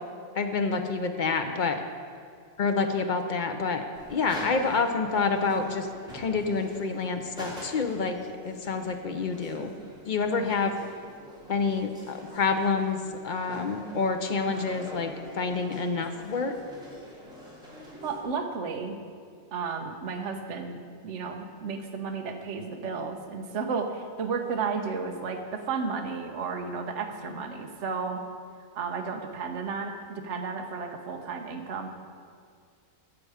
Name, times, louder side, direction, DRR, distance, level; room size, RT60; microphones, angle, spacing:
voice 1, 0.3-1.8 2.6-3.8 4.1-5.9 6.1-8.2 8.4-9.7 10.1-10.8 11.5-16.5, left 4 dB, 60° left, 6 dB, 0.5 m, -28 dB
sound 1, 3.9-18.2, equal, 5° right, 2.4 m, -45 dB
voice 2, 18.0-19.0 19.5-28.2 28.7-31.9, right 5 dB, 50° right, 4 dB, 1.2 m, -33 dB
14.5 x 7.8 x 4.9 m, 2.2 s
omnidirectional pair, 1.7 m